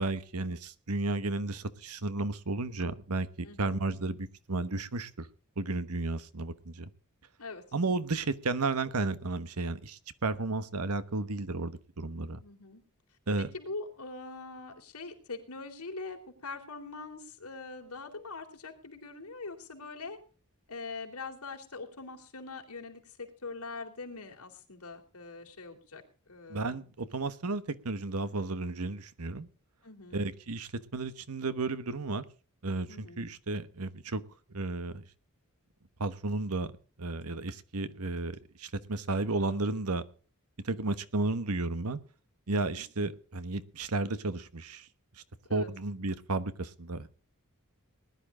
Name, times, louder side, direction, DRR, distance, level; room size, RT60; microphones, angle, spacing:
voice 1, 0.0-5.3 5.6-6.9 7.7-12.4 13.3-13.5 26.5-29.5 30.1-32.2 32.6-34.2 34.5-35.0 36.0-36.7 37.0-40.0 40.6-42.0 42.5-44.9 45.5-47.1, right 2 dB, 80° right, 14 dB, 1.2 m, -33 dB
voice 2, 3.4-3.8 7.4-7.6 12.4-12.8 13.4-20.2 20.7-26.8 29.8-30.3 32.9-33.3 42.5-42.9 45.5-45.7, left 3 dB, 75° left, 3 dB, 3.4 m, -43 dB
20.0 x 11.0 x 3.8 m, 0.37 s
head